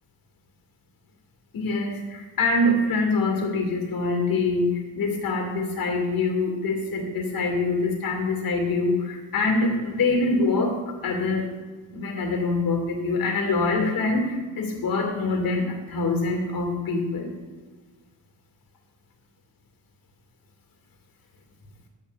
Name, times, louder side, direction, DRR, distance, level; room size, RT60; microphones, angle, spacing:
voice 1, 1.5-11.5 11.9-17.3, left 3 dB, 50° left, 3 dB, 2.0 m, -25 dB
13.0 x 7.2 x 2.4 m, 1.4 s
cardioid pair, 95°, 44 cm